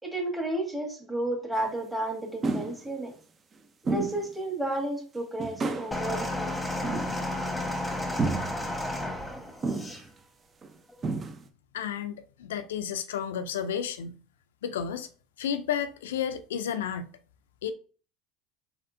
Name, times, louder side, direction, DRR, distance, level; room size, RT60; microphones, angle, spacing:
voice 1, 0.0-3.1 3.9-6.7, right 1 dB, 10° right, 1.9 m, -32 dB
sound 1, 1.6-1.7 2.4-2.8 3.9-4.3 4.7-4.8 5.4-6.0 6.8-7.4 8.2-8.6 9.6-10.1 10.6-10.7 11.0-11.5, right 3 dB, 30° right, 0.7 m, -30 dB
sound 2, 5.9-10.0 10.9-11.0, left 1 dB, 10° left, 1.2 m, -32 dB
voice 2, 11.7-14.2 14.6-15.1 15.4-17.1 17.6-17.7, left 8 dB, 90° left, 0.4 m, -32 dB
4.2 x 4.1 x 2.6 m
supercardioid pair, 95°, 0 cm